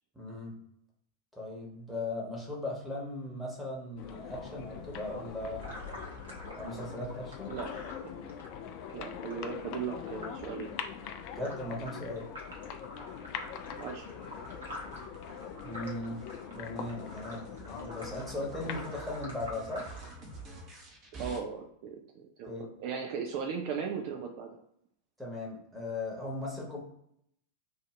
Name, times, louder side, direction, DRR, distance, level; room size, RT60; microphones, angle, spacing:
voice 1, 0.1-0.6 1.3-5.7 6.6-7.5 11.3-12.3 15.6-16.2 16.5-19.9 22.5-22.6 25.2-26.8, left 2 dB, 5° right, -4 dB, 1.2 m, -38 dB
sound 1, 4.0-18.8, left 8 dB, 45° left, 0.3 m, -43 dB
sound 2, 5.0-6.8 9.7-21.4, right 3 dB, 30° right, 0.9 m, -52 dB
sound 3, 5.6-20.8, left 1 dB, 65° right, 0.9 m, -48 dB
voice 2, 8.9-10.7 13.8-14.1 21.2-24.6, right 6 dB, 45° right, 2 dB, 0.4 m, -37 dB
2.6 x 2.5 x 3.1 m, 0.73 s
figure-of-eight pair, 90°, 0 cm